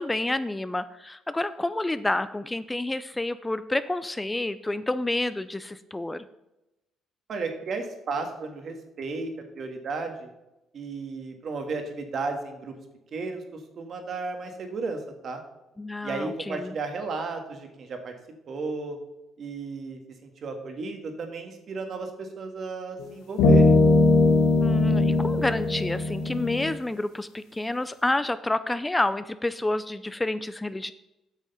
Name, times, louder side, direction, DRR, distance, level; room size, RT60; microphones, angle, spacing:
voice 1, 0.0-6.3 15.8-16.7 24.6-30.9, left 2 dB, 15° left, 14 dB, 0.4 m, -29 dB
voice 2, 7.3-9.3 9.6-10.3 10.7-12.7 13.1-15.4 16.0-18.1 18.5-19.0 19.4-23.8, right 4 dB, 55° right, 5 dB, 1.8 m, -34 dB
sound 1, 23.0-23.1 23.4-26.8, left 2 dB, 85° left, 1.1 m, -20 dB
8.3 x 6.4 x 5.6 m, 0.95 s
cardioid pair, 80°, 0 cm